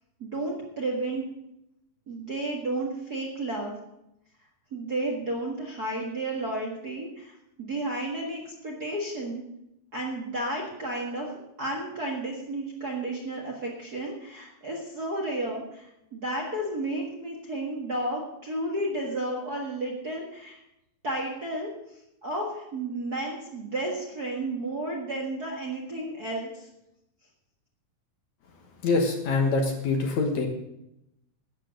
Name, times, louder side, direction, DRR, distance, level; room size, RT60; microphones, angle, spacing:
voice 1, 0.2-1.2 2.1-3.7 4.7-7.3 7.6-9.4 9.9-11.3 11.6-15.6 16.1-20.6 21.0-21.7 22.2-26.5, right 1 dB, 40° right, -1 dB, 1.5 m, -32 dB
voice 2, 28.8-30.5, left 3 dB, 60° left, 3 dB, 2.3 m, -24 dB
13.0 x 8.8 x 6.4 m, 0.84 s
omnidirectional pair, 4.1 m